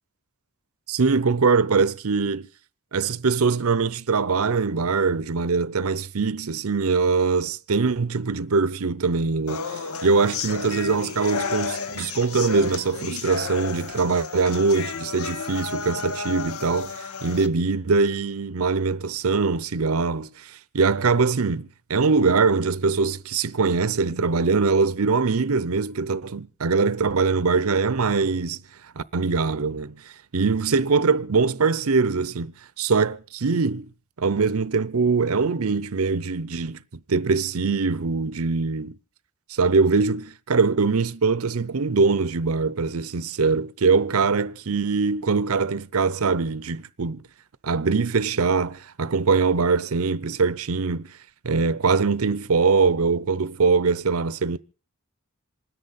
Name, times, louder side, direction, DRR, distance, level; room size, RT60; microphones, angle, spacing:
voice 1, 0.9-2.5 2.9-28.6 29.0-30.0 30.3-33.9 34.2-36.8 37.1-39.0 39.5-47.2 47.6-51.1 51.4-54.6, right 4 dB, 80° right, 0.7 m, -22 dB
sound 1, 9.5-17.5, left 5 dB, 85° left, 0.9 m, -32 dB
27.0 x 10.0 x 4.2 m
head